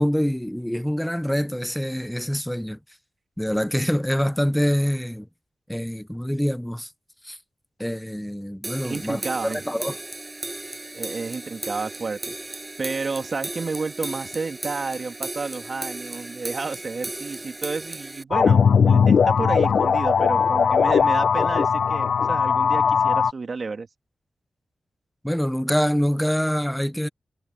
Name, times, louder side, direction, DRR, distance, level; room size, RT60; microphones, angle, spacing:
voice 1, 0.0-2.8 3.4-5.3 5.7-6.9 7.2-7.4 7.8-10.0 25.2-27.1, equal, 5° left, 0.6 m, -25 dB
sound 1, 8.6-18.2, right 2 dB, 25° right, 7.9 m, -35 dB
voice 2, 8.8-9.6 10.9-23.9, right 4 dB, 55° right, 2.3 m, -31 dB
sound 2, 18.3-23.3, left 6 dB, 80° left, 0.6 m, -19 dB
cardioid pair, 70°, 0 cm